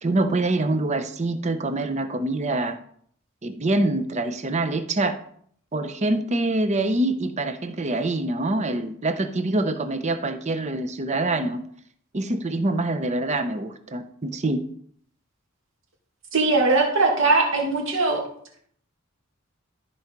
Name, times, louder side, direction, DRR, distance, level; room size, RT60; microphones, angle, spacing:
voice 1, 0.0-2.8 3.4-5.2 5.7-11.6 12.1-14.6, right 2 dB, 35° right, 9 dB, 0.8 m, -25 dB
voice 2, 16.3-18.2, right 3 dB, 65° right, 1 dB, 2.5 m, -20 dB
13.5 x 4.6 x 5.2 m, 0.63 s
head